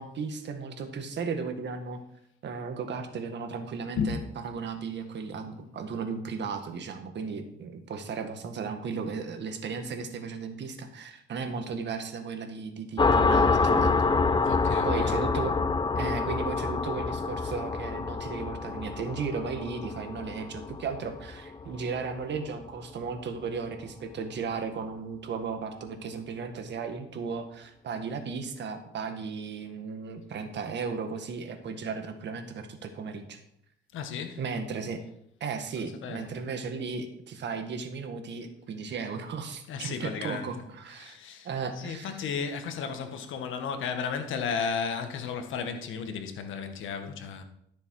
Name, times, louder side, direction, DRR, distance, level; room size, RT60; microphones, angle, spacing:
voice 1, 0.0-2.0 2.4-14.1 14.8-15.6 15.9-33.4 34.4-35.0 35.4-41.2 41.4-42.3, right 5 dB, 65° right, 1.8 m, -35 dB
sound 1, 13.0-22.2, left 4 dB, 25° left, 0.6 m, -27 dB
voice 2, 14.4-15.2 33.9-34.4 36.0-36.3 39.7-40.5 41.0-41.5 41.8-47.4, left 6 dB, 80° left, 1.5 m, -33 dB
13.0 x 6.8 x 4.8 m
cardioid pair, 90°, 20 cm